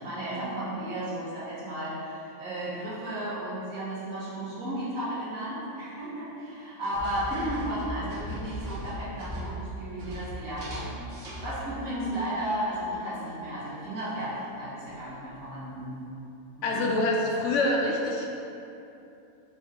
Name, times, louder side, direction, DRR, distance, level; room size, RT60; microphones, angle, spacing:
voice 1, 0.0-16.0 16.6-16.9, right 1 dB, 75° right, -10 dB, 1.7 m, -34 dB
sound 1, 6.9-11.8 12.2-13.0 14.8-15.0 15.3-15.4, equal, 60° right, 1.3 m, -38 dB
voice 2, 16.6-18.3, left 2 dB, 70° left, 0 dB, 0.8 m, -25 dB
5.3 x 2.7 x 3.6 m, 2.8 s
omnidirectional pair, 1.5 m